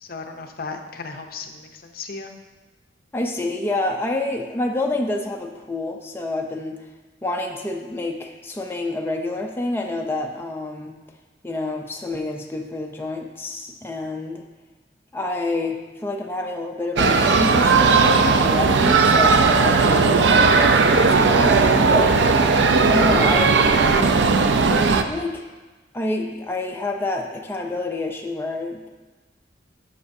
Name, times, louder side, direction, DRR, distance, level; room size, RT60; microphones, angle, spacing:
voice 1, 0.0-2.3, left 4 dB, 55° left, 5 dB, 0.6 m, -35 dB
voice 2, 3.1-6.8 7.2-11.0 11.4-14.4 15.1-22.2 22.9-24.2 25.1-25.5 25.9-28.9, left 2 dB, 15° left, 1 dB, 0.5 m, -28 dB
sound 1, 17.0-25.0, right 4 dB, 80° right, 0.5 m, -16 dB
11.0 x 6.7 x 2.7 m, 1.2 s
head